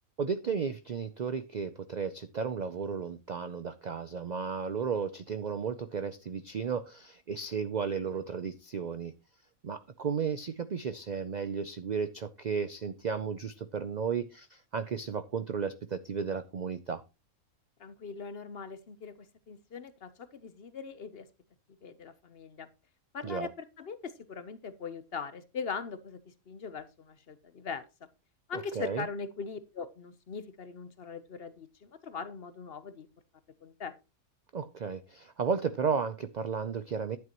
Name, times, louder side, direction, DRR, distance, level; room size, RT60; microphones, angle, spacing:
voice 1, 0.2-9.1 9.6-17.0 23.2-23.5 28.8-29.1 34.5-37.2, right 6 dB, 70° right, 0.4 m, -34 dB
voice 2, 17.8-21.3 21.8-22.7 23.1-27.8 28.5-33.1 33.6-33.9, left 5 dB, 50° left, 0.9 m, -41 dB
10.5 x 9.5 x 3.0 m
omnidirectional pair, 1.5 m